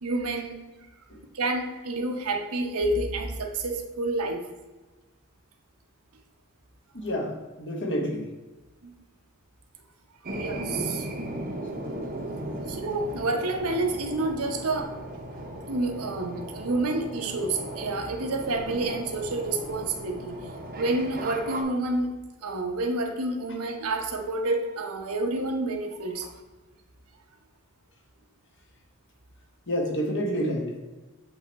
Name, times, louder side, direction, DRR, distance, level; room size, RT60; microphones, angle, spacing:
voice 1, 0.0-0.6 1.3-4.4 8.8-8.9 10.3-11.1 12.7-14.9 15.7-20.4 20.8-22.1 22.4-26.3, right 2 dB, 75° right, 3 dB, 0.9 m, -29 dB
voice 2, 6.9-8.3 11.7-11.8 29.7-30.8, equal, 55° left, 1 dB, 1.3 m, -29 dB
sound 1, 10.2-21.6, right 1 dB, 40° right, 0.8 m, -37 dB
8.2 x 3.4 x 4.1 m, 1.2 s
head